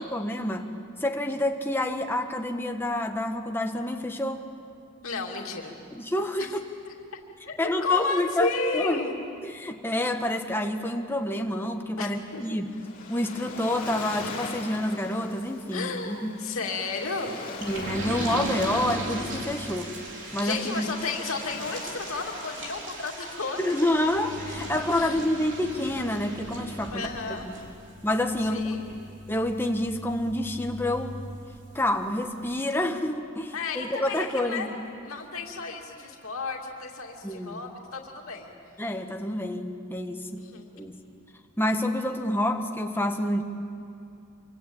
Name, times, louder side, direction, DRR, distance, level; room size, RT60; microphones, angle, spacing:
voice 1, 0.1-0.7 1.0-4.4 5.9-6.6 7.6-9.0 9.4-12.7 13.1-16.4 17.6-20.0 20.3-20.8 23.6-27.1 27.4-27.5 28.0-28.7 29.3-31.1 31.7-34.7 37.2-37.6 38.8-40.5 40.8-41.0 41.6-43.4, left 1 dB, 10° left, 4 dB, 1.4 m, -28 dB
voice 2, 5.0-5.8 6.4-6.6 6.8-6.9 7.5-9.1 12.0-12.5 15.7-17.4 20.4-23.9 24.9-25.2 26.9-27.5 28.4-28.9 33.5-34.7 35.0-38.5 40.4-40.7, left 4 dB, 80° left, 0 dB, 2.7 m, -32 dB
Waves surf, 12.3-24.7, left 3 dB, 40° left, 3.5 m, -42 dB
sound 1, 17.6-31.9 32.3-32.4 32.7-32.8, right 1 dB, 60° right, 4.2 m, -37 dB
27.5 x 25.0 x 8.7 m, 2.6 s
head